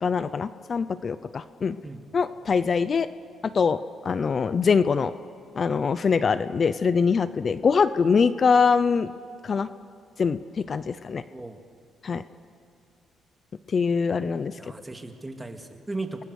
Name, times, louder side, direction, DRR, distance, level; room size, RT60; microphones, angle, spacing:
voice 1, 0.0-1.8 2.1-3.1 3.4-5.1 5.6-9.1 9.4-9.7 10.2-11.2 12.0-12.2 13.7-14.6, left 5 dB, 45° left, 14 dB, 0.7 m, -23 dB
voice 2, 11.3-11.6 14.6-16.2, right 2 dB, 15° right, 5 dB, 2.4 m, -36 dB
30.0 x 21.0 x 6.6 m, 2.6 s
cardioid pair, 90°, 0 cm